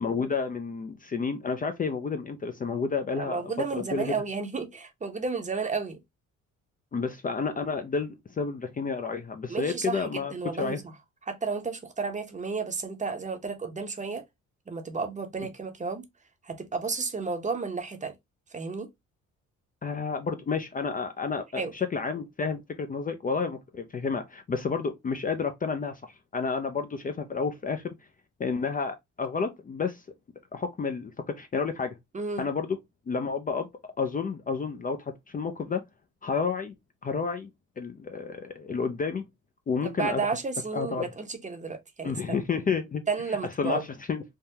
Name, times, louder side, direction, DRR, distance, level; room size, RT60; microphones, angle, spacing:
voice 1, 0.0-4.2 6.9-10.8 19.8-27.9 28.4-30.0 30.5-32.0 32.4-32.8 33.1-33.7 34.0-35.8 36.2-36.7 37.0-37.5 37.8-39.2 39.7-40.3 40.7-41.0 42.0-43.0 43.6-44.2, left 5 dB, 30° left, 0.4 m, -30 dB
voice 2, 3.2-6.0 9.5-10.8 11.3-14.2 14.7-16.1 16.4-18.1 18.5-18.9 21.6-21.7 32.1-32.4 39.8-42.4 43.1-43.8, right 4 dB, 25° right, 0.7 m, -32 dB
3.5 x 2.2 x 2.7 m
cardioid pair, 90°, 30 cm